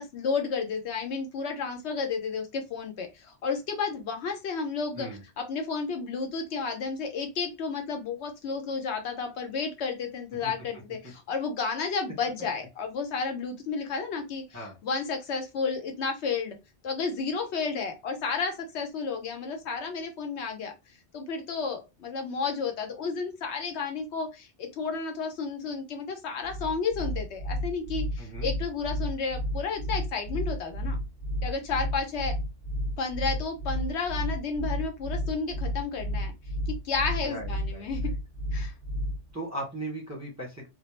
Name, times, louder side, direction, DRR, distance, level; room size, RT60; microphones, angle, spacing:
voice 1, 0.0-5.1 5.4-16.6 16.8-20.7 21.1-31.0 31.4-32.3 33.0-36.3 36.7-38.0 38.5-38.7, left 5 dB, 75° left, 5 dB, 0.9 m, -32 dB
sound 1, 26.4-39.3, equal, 35° left, 0.9 m, -32 dB
voice 2, 28.2-28.5 37.2-38.1 39.3-40.7, right 1 dB, 20° right, -3 dB, 0.6 m, -38 dB
2.2 x 2.0 x 3.0 m, 0.24 s
omnidirectional pair, 1.2 m